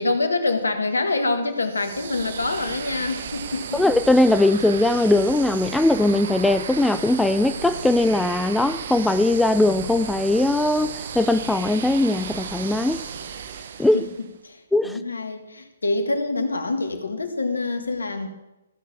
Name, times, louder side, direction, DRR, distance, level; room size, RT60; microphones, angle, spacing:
voice 1, 0.0-3.8 13.9-18.3, left 3 dB, 80° left, 1.8 m, -26 dB
sound 1, 1.6-14.3, right 7 dB, 55° right, 1.0 m, -34 dB
voice 2, 3.7-13.0 13.8-14.0 14.7-15.0, left 2 dB, 5° left, 0.4 m, -20 dB
15.0 x 6.7 x 7.1 m
figure-of-eight pair, 130°, 0 cm